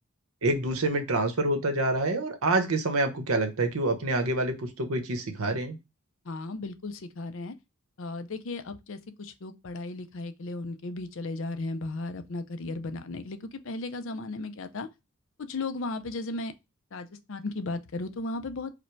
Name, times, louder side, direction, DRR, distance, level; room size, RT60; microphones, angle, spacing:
voice 1, 0.4-5.8, right 2 dB, 75° right, 0.9 m, -27 dB
voice 2, 6.3-7.5 8.0-14.9 15.5-16.5 16.9-18.7, left 2 dB, 60° left, 0.5 m, -35 dB
4.9 x 2.2 x 4.5 m
head